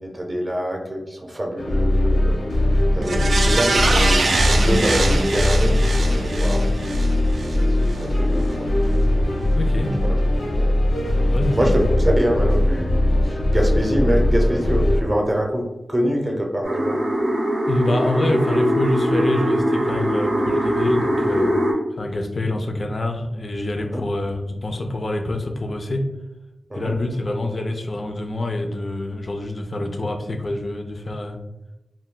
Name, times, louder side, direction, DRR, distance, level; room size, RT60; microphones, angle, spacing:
voice 1, 0.0-2.4 2.9-6.6 7.2-7.7 8.0-8.7 10.0-10.1 10.6-10.7 11.6-15.6 15.9-17.0 23.9-24.0 26.7-26.9, equal, 25° right, 0 dB, 0.6 m, -25 dB
sound 1, 1.6-15.0, left 1 dB, 85° left, 0.7 m, -20 dB
sound 2, 3.0-7.6 7.9-8.0, right 2 dB, 75° right, 0.3 m, -23 dB
voice 2, 9.5-9.9 11.3-11.8 17.7-21.5 21.9-26.1 26.7-31.4, left 1 dB, 50° left, 5 dB, 0.4 m, -26 dB
sound 3, 16.6-21.7, equal, 90° right, 0.7 m, -21 dB
2.2 x 2.1 x 3.6 m, 0.97 s
cardioid pair, 60°, 0 cm